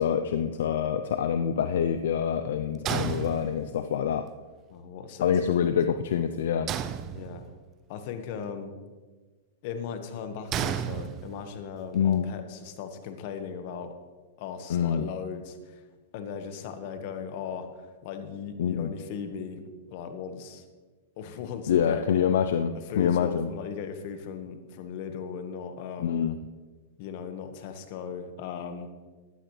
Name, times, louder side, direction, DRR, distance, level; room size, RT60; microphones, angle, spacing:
voice 1, 0.0-4.2 5.2-6.7 11.9-12.3 14.7-15.1 18.6-18.9 21.7-23.5 26.0-26.4, left 8 dB, 75° left, 9 dB, 0.6 m, -26 dB
sound 1, 2.9-3.9 6.7-7.7 10.5-11.6, right 9 dB, 30° right, 0.6 m, -32 dB
voice 2, 4.7-5.5 7.1-7.4 7.9-8.7 9.6-13.9 14.4-15.8 16.1-19.6 19.9-20.6 21.2-22.2 22.9-26.2 27.0-28.9, left 6 dB, 55° left, 7 dB, 1.5 m, -37 dB
15.5 x 11.5 x 3.3 m, 1.4 s
hypercardioid pair, 130°, 0 cm